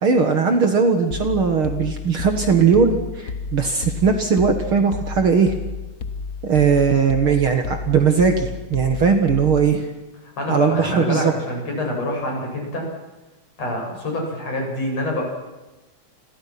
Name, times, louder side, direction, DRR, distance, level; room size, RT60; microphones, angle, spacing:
voice 1, 0.0-5.5 6.4-9.9 10.5-11.3, right 5 dB, 50° right, 6 dB, 2.3 m, -19 dB
sound 1, 1.1-9.8, left 4 dB, 75° left, 0.8 m, -31 dB
voice 2, 10.4-12.9 13.6-15.2, left 1 dB, 55° left, 0 dB, 8.1 m, -26 dB
29.0 x 22.0 x 6.0 m, 1.1 s
omnidirectional pair, 3.5 m